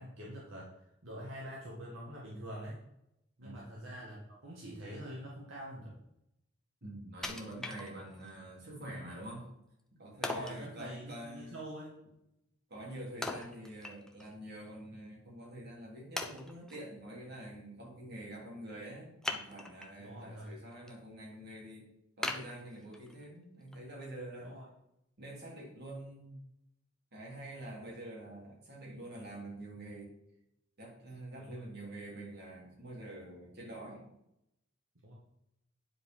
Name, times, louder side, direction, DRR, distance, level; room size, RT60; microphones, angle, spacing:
voice 1, 0.0-2.8 3.4-5.9 9.1-9.2 10.2-12.0 20.0-20.5 24.4-24.7 31.4-31.7 35.0-35.1, right 1 dB, 75° right, -5 dB, 2.0 m, -45 dB
voice 2, 6.8-9.5 10.0-11.6 12.7-21.9 22.2-24.6 25.2-26.4 27.1-30.1 30.8-34.1, right 1 dB, 55° right, -3 dB, 3.7 m, -46 dB
Wood, 7.2-8.3 8.8-8.9 10.2-10.6 13.2-14.3 14.7-14.8 15.4-15.5 16.2-16.8 19.2-20.0 20.5-20.9 21.3-21.4 22.2-23.2 23.7-23.8, left 1 dB, 5° left, 0.8 m, -40 dB
9.7 x 4.9 x 5.6 m, 0.82 s
head